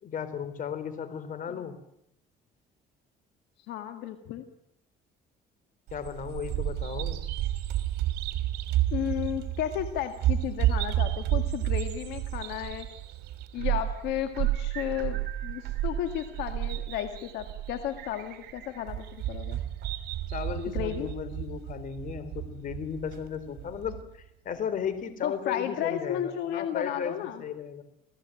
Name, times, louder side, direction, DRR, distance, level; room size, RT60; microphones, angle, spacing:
voice 1, 0.0-1.8 5.9-7.2 20.3-27.8, left 7 dB, 50° left, 13 dB, 3.9 m, -35 dB
voice 2, 3.7-4.4 8.9-12.9 13.5-19.6 20.7-21.1 25.2-27.4, left 11 dB, 85° left, 7 dB, 2.0 m, -33 dB
Bird vocalization bird call bird song, 5.9-24.0, right 13 dB, 80° right, 3.1 m, -31 dB
28.0 x 17.0 x 9.2 m, 0.77 s
cardioid pair, 110°, 17 cm